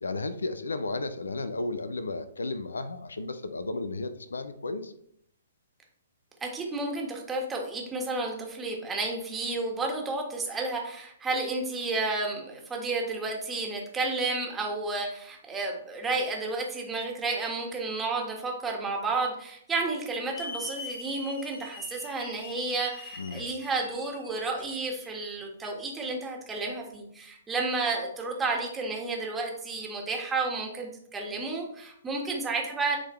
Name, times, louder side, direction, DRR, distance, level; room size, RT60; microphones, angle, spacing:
voice 1, 0.0-4.9 23.2-23.5, left 2 dB, 80° left, 11 dB, 0.6 m, -33 dB
voice 2, 6.4-33.0, right 3 dB, 15° right, 0 dB, 1.6 m, -31 dB
Hiss / Alarm, 20.3-25.1, left 3 dB, 60° left, 1.5 m, -43 dB
10.0 x 3.8 x 3.1 m, 0.71 s
figure-of-eight pair, 125°, 0 cm